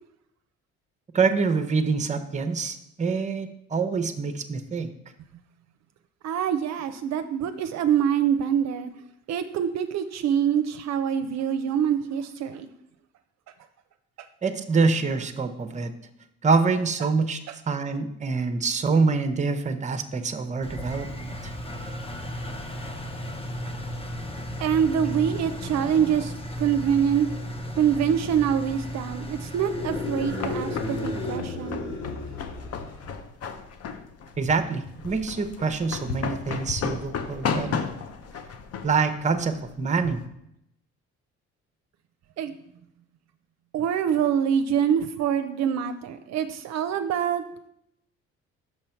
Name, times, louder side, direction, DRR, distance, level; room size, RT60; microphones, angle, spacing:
voice 1, 1.1-4.9 14.4-15.9 16.4-17.4 17.7-21.5 34.4-37.8 38.8-40.2, right 4 dB, 25° right, 0.7 m, -25 dB
voice 2, 6.2-8.9 9.3-12.7 24.6-27.3 27.8-31.8 42.4-42.5 43.7-47.4, right 8 dB, 65° right, 0.5 m, -25 dB
Engine, 20.6-31.4, equal, 20° left, 0.8 m, -35 dB
sound 1, 29.5-33.2, left 3 dB, 75° left, 2.3 m, -33 dB
sound 2, 29.8-40.2, left 6 dB, 55° left, 0.8 m, -34 dB
6.3 x 5.5 x 4.4 m
cardioid pair, 85°, 29 cm